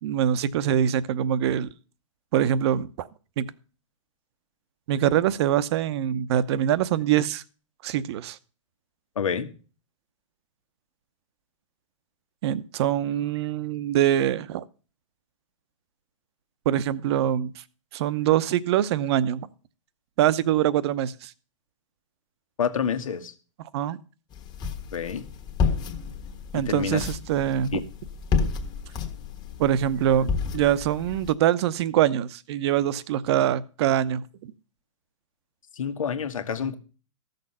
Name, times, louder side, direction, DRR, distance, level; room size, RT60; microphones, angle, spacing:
voice 1, 0.0-1.7 2.3-3.1 3.4-3.5 4.9-7.4 7.8-8.4 12.4-14.6 16.6-17.6 17.9-19.5 20.2-21.3 23.7-24.0 26.5-27.8 29.6-34.5, right 10 dB, 55° right, 0.9 m, -24 dB
voice 2, 9.1-9.5 22.6-23.3 24.9-25.2 26.7-27.0 27.7-27.8 35.8-36.8, left 7 dB, 80° left, 1.6 m, -28 dB
sound 1, 24.3-31.3, left 5 dB, 25° left, 1.4 m, -30 dB
14.0 x 6.7 x 5.6 m
hypercardioid pair, 130°, 17 cm